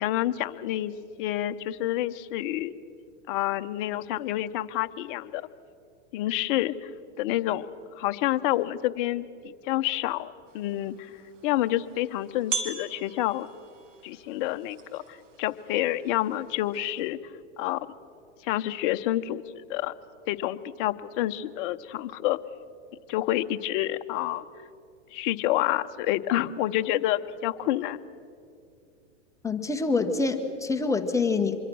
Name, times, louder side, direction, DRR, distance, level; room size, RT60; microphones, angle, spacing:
voice 1, 0.0-2.7 3.3-5.4 6.1-6.9 7.2-7.7 7.9-11.1 11.4-13.5 14.0-17.2 17.6-17.9 18.4-19.9 20.3-22.4 23.1-24.4 25.1-28.0, left 14 dB, 45° left, 10 dB, 0.9 m, -28 dB
sound 1, 10.5-17.1, right 5 dB, 85° right, 2.7 m, -41 dB
voice 2, 29.4-31.6, left 4 dB, 10° left, 5 dB, 1.2 m, -26 dB
26.0 x 22.5 x 6.2 m, 2.5 s
hypercardioid pair, 125°, 36 cm